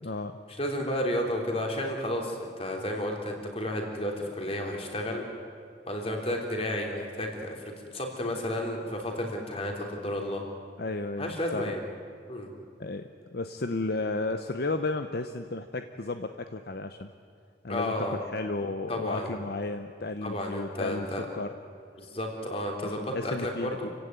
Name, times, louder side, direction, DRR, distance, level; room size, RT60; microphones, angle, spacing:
voice 1, 0.0-0.4 8.3-8.4 10.8-11.6 12.8-17.1 17.6-17.9 18.3-21.1 21.3-21.5 22.8-23.9, left 2 dB, 55° left, 7 dB, 0.8 m, -33 dB
voice 2, 0.6-5.2 5.9-10.4 11.2-11.8 12.3-12.5 17.7-18.2 18.9-19.4 20.2-21.3 22.0-23.8, left 1 dB, 30° left, 1 dB, 3.4 m, -32 dB
29.0 x 16.0 x 9.4 m, 2.3 s
head